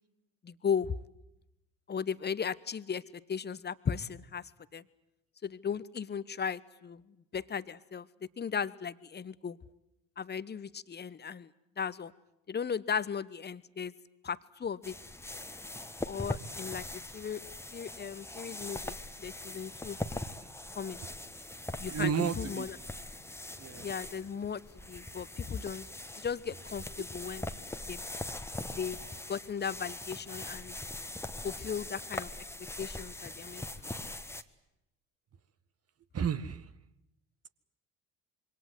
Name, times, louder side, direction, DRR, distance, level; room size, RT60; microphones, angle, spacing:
voice 1, 0.4-1.0 1.9-4.4 4.7-4.8 5.4-7.0 7.3-8.1 8.4-9.6 10.2-11.5 11.8-12.1 12.5-13.9 14.2-14.9 16.1-17.4 17.7-20.0 20.8-21.0 21.8-22.8 23.8-24.6 24.9-25.9 26.2-27.5 27.9-28.0 28.7-29.0 29.3-30.8 31.4-32.3 32.8-33.7 34.0-34.1, left 7 dB, 25° left, 18 dB, 1.1 m, -36 dB
sound 1, 14.8-34.4, left 2 dB, 5° left, 1.5 m, -42 dB
voice 2, 21.9-22.7 23.6-23.9 36.1-36.7, right 7 dB, 35° right, 14 dB, 1.6 m, -32 dB
26.5 x 23.5 x 8.0 m, 0.87 s
figure-of-eight pair, 55°, 40 cm